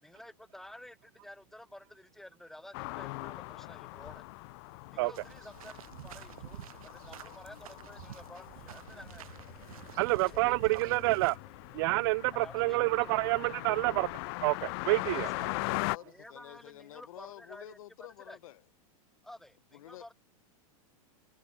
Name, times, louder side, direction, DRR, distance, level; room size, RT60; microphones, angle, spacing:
voice 1, 0.0-4.2 4.9-9.3 10.1-10.9 12.3-13.8 15.1-15.5 16.0-17.8 18.2-18.4 19.2-20.1, left 1 dB, ahead, 4.7 m, -51 dB
sound 1, 2.7-16.0, left 27 dB, 45° left, 0.9 m, -41 dB
sound 2, 5.1-11.4, right 13 dB, 75° right, 4.1 m, -49 dB
sound 3, 6.9-14.5, right 6 dB, 15° right, 6.2 m, -65 dB
voice 2, 10.0-11.3 11.7-14.1 14.4-15.3, right 24 dB, 45° right, 0.4 m, -28 dB
voice 3, 15.0-18.6 19.7-20.1, left 14 dB, 70° left, 7.4 m, -49 dB
supercardioid pair, 160°, 18 cm